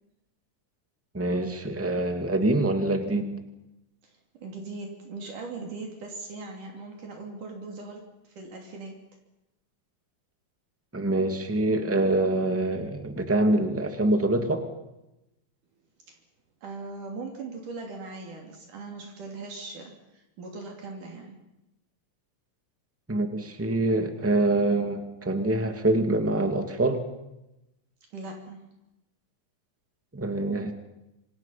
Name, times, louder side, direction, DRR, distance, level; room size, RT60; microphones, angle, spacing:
voice 1, 1.1-3.3 10.9-14.6 23.1-27.0 30.1-30.7, right 2 dB, 5° right, 6 dB, 1.7 m, -25 dB
voice 2, 4.4-9.0 16.1-16.2 16.6-21.4 28.1-28.6, right 3 dB, 70° right, 1 dB, 4.5 m, -40 dB
27.0 x 26.5 x 5.8 m, 0.91 s
omnidirectional pair, 3.8 m